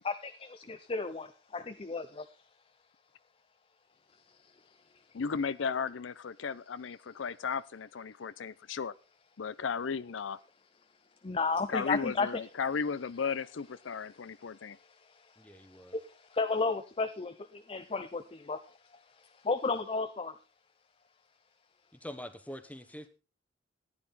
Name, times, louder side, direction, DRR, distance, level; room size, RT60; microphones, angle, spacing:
voice 1, 0.0-2.3 11.2-12.3 14.6-14.7 15.1-15.2 15.7-18.8 19.4-20.3, left 4 dB, 30° left, 9 dB, 0.5 m, -33 dB
voice 2, 5.1-8.9 9.4-10.4 11.7-14.8, left 5 dB, 90° left, 17 dB, 0.5 m, -35 dB
voice 3, 15.4-15.9 21.9-23.1, equal, 10° left, 10 dB, 1.0 m, -45 dB
14.0 x 9.9 x 4.1 m, 0.32 s
head